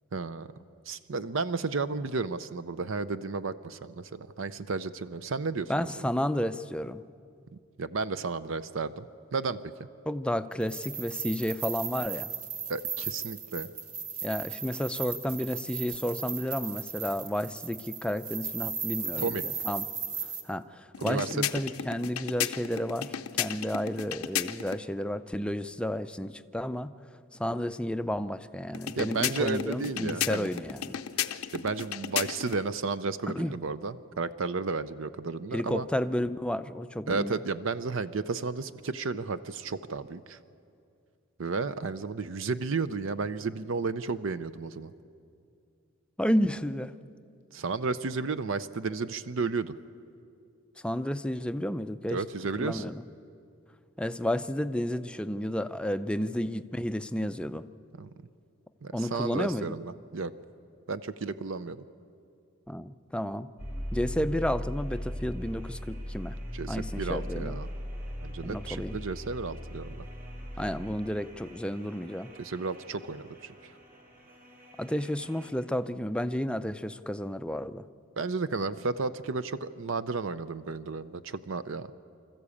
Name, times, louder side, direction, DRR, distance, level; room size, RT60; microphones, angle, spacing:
voice 1, 0.1-0.5 0.9-6.1 7.8-9.1 9.3-9.6 12.7-13.7 19.2-19.4 21.0-21.3 29.0-30.5 31.5-35.9 37.1-40.4 41.4-44.9 47.5-49.7 52.1-52.8 58.0-58.1 58.8-60.3 60.9-61.8 66.5-67.7 68.2-70.1 72.4-73.7 78.2-81.9, right 4 dB, 60° right, 13 dB, 0.6 m, -33 dB
voice 2, 5.7-7.0 10.1-12.3 14.2-19.9 20.4-26.9 27.3-31.0 33.3-33.5 35.5-37.4 46.2-46.9 50.8-52.2 52.6-53.0 54.0-57.7 58.9-59.8 62.7-63.5 63.9-66.4 66.7-67.6 68.4-69.0 70.6-72.3 74.8-77.8, equal, 5° left, 11 dB, 0.4 m, -31 dB
sound 1, 10.6-20.4, right 6 dB, 85° right, 1.7 m, -36 dB
sound 2, 20.9-24.8 28.7-32.6, left 10 dB, 90° left, 0.7 m, -34 dB
sound 3, 63.6-75.5, equal, 40° right, 3.7 m, -40 dB
25.5 x 14.0 x 8.5 m, 2.5 s
head